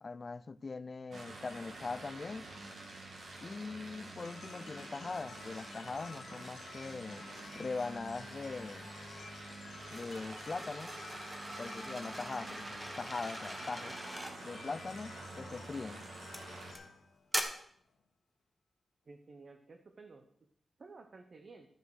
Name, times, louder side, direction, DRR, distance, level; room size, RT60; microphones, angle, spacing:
voice 1, 0.0-2.5 3.4-7.3 7.5-8.9 9.9-10.9 11.6-14.0 14.4-16.0, left 4 dB, 30° left, 0.3 m, -41 dB
sound 1, 1.1-16.7, right 2 dB, 55° right, 2.4 m, -48 dB
sound 2, 4.2-18.0, left 5 dB, 90° left, 1.5 m, -54 dB
sound 3, 9.8-14.4 15.3-15.6 16.3-16.8 17.3-17.4, right 1 dB, 10° right, 1.1 m, -42 dB
voice 2, 19.1-20.2 20.8-21.7, right 3 dB, 40° right, 0.8 m, -53 dB
13.0 x 6.4 x 6.3 m
wide cardioid pair, 170°, 0 cm